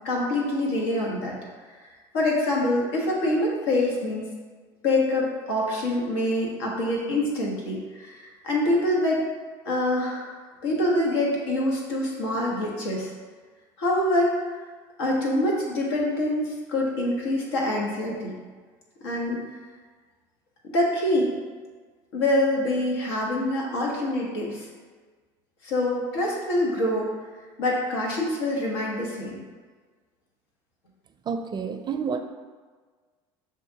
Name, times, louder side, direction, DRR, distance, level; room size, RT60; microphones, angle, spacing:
voice 1, 0.0-1.3 1.8-4.3 4.8-9.2 9.6-10.3 10.6-13.1 13.8-14.3 15.0-18.3 19.0-19.4 20.6-21.3 22.1-24.7 25.6-27.1 27.6-29.4, left 1 dB, 85° left, -3 dB, 1.2 m, -25 dB
voice 2, 31.3-32.2, right 6 dB, 35° right, 7 dB, 0.5 m, -29 dB
7.1 x 2.5 x 2.8 m, 1.4 s
supercardioid pair, 85°, 13 cm